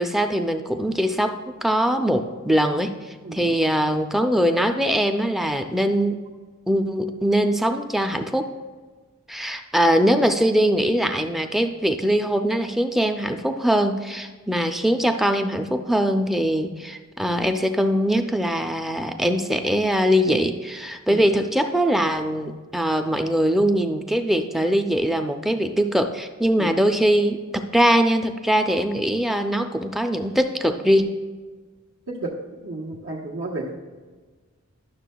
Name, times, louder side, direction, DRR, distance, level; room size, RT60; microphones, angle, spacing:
voice 1, 0.0-1.4 1.6-2.9 3.3-6.2 6.7-8.5 9.3-31.1, equal, ahead, 6 dB, 0.4 m, -22 dB
voice 2, 3.2-3.5 21.1-21.2 26.6-26.7 32.1-32.4 32.6-33.7, right 2 dB, 85° right, -6 dB, 1.2 m, -32 dB
12.0 x 6.4 x 2.3 m, 1.4 s
head